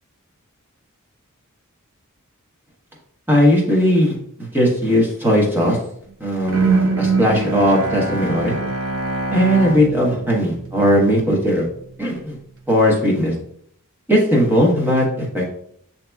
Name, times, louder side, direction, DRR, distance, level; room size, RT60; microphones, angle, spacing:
voice 1, 3.3-5.8 6.2-8.6 9.3-11.7 12.0-12.4 12.7-13.3 14.1-15.5, equal, 10° right, -3 dB, 1.0 m, -18 dB
Bowed string instrument, 6.5-11.6, right 3 dB, 70° right, 0.7 m, -24 dB
8.0 x 2.8 x 2.3 m, 0.66 s
head